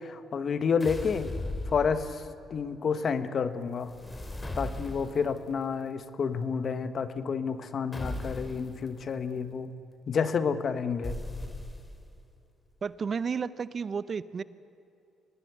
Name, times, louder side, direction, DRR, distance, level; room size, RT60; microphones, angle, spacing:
voice 1, 0.0-1.3 1.7-2.2 2.5-3.9 4.6-9.7 10.1-11.2, left 6 dB, 50° left, 12 dB, 1.3 m, -29 dB
sound 1, 0.8-2.4 3.8-5.4 7.9-8.8 11.0-12.1, left 1 dB, 20° left, 2.8 m, -37 dB
voice 2, 12.8-14.4, right 6 dB, 45° right, 16 dB, 0.8 m, -32 dB
25.0 x 19.5 x 8.2 m, 2.7 s
cardioid pair, 90°, 0 cm